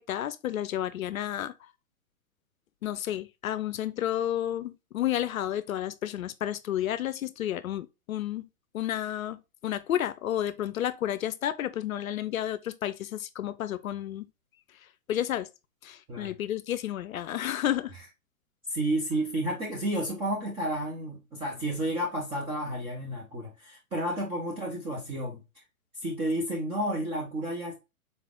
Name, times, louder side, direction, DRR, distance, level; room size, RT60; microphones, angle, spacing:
voice 1, 0.0-1.5 2.8-8.5 8.7-14.3 15.1-15.5 15.8-17.9, left 11 dB, 70° left, 0.5 m, -31 dB
voice 2, 18.7-25.4 26.0-27.7, right 1 dB, 15° right, 0.5 m, -31 dB
4.1 x 3.3 x 2.3 m
hypercardioid pair, 125°, 43 cm